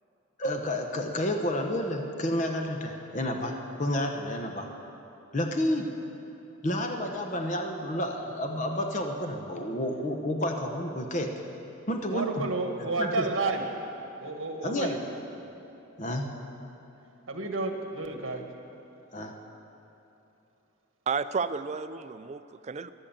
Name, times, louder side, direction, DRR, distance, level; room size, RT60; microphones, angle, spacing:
voice 1, 0.4-3.5 3.8-4.7 5.3-5.9 6.6-11.3 11.9-12.5 12.8-13.2 14.6-14.9 16.0-16.3 19.1-19.3, left 1 dB, 35° left, 4 dB, 1.0 m, -30 dB
voice 2, 12.1-13.6 14.2-15.0 17.3-18.4, right 3 dB, 70° right, 4 dB, 1.5 m, -31 dB
voice 3, 21.1-22.9, right 5 dB, 35° right, 12 dB, 0.4 m, -32 dB
14.0 x 12.0 x 7.3 m, 2.9 s
head